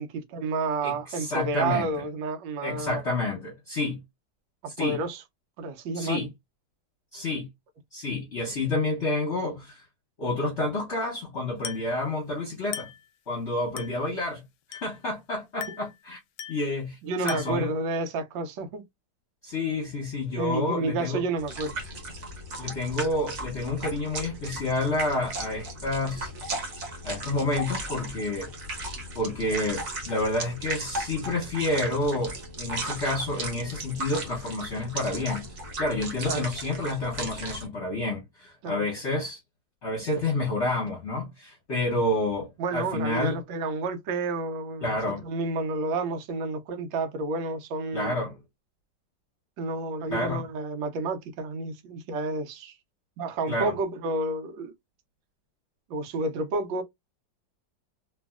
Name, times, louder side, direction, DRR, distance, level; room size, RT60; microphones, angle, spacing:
voice 1, 0.0-3.0 4.6-5.2 5.6-6.3 15.7-15.8 17.0-18.9 20.4-21.8 36.3-36.5 38.6-38.9 42.6-48.1 49.6-52.8 53.2-54.7 55.9-56.8, right 3 dB, 85° right, 1.4 m, -30 dB
voice 2, 0.8-1.9 2.6-4.0 4.8-5.0 5.9-6.3 7.1-7.5 7.9-9.8 10.2-12.9 13.3-14.4 14.7-16.2 16.5-17.7 19.4-21.2 22.6-26.3 27.0-28.5 29.1-35.5 35.8-39.4 39.8-43.4 44.8-45.2 47.9-48.4 50.1-50.4 53.5-53.7, left 2 dB, 45° left, 1.0 m, -29 dB
Glass, 11.6-12.0 12.7-13.1 13.8-14.1 14.7-15.1 15.6-16.0 16.4-16.7 17.3-17.7, left 9 dB, 75° left, 1.1 m, -39 dB
sound 1, 21.4-37.7, right 2 dB, 50° right, 1.1 m, -36 dB
3.0 x 2.6 x 2.3 m
omnidirectional pair, 2.0 m